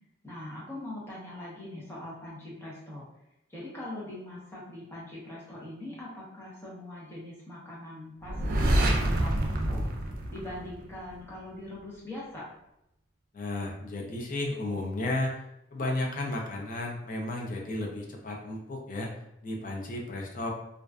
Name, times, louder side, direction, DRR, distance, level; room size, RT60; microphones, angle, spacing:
voice 1, 0.2-3.0 3.5-9.8 10.3-12.5, left 1 dB, 15° left, -7 dB, 0.8 m, -42 dB
sound 1, 8.3-11.1, right 1 dB, 50° right, 0.3 m, -27 dB
voice 2, 13.3-15.3 15.7-19.1 19.4-20.5, left 2 dB, 45° left, 1 dB, 0.4 m, -33 dB
2.4 x 2.2 x 2.3 m, 0.83 s
head